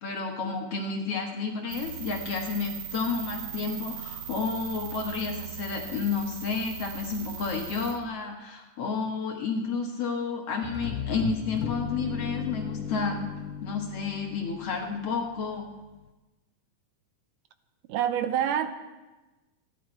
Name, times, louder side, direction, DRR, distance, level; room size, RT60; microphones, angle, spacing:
voice 1, 0.0-13.3 13.6-15.7, left 4 dB, 55° left, 1 dB, 2.2 m, -31 dB
sound 1, 1.7-7.9, right 9 dB, 50° right, 1.9 m, -39 dB
sound 2, 10.6-15.5, left 9 dB, 80° left, 2.2 m, -36 dB
voice 2, 17.9-18.7, right 10 dB, 80° right, 10 dB, 2.3 m, -26 dB
28.0 x 11.0 x 4.5 m, 1.1 s
omnidirectional pair, 3.9 m